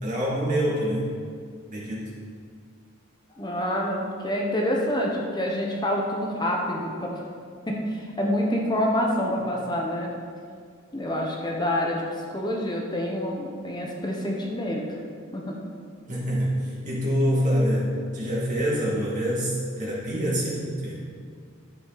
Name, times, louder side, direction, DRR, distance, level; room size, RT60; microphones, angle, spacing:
voice 1, 0.0-1.1 1.7-2.2 16.1-21.0, equal, 40° right, -6 dB, 2.5 m, -26 dB
voice 2, 3.4-7.2 7.7-10.1 10.9-12.0 12.3-14.8 15.3-15.7, left 1 dB, 20° left, -1 dB, 1.1 m, -27 dB
10.0 x 7.9 x 4.2 m, 2.1 s
head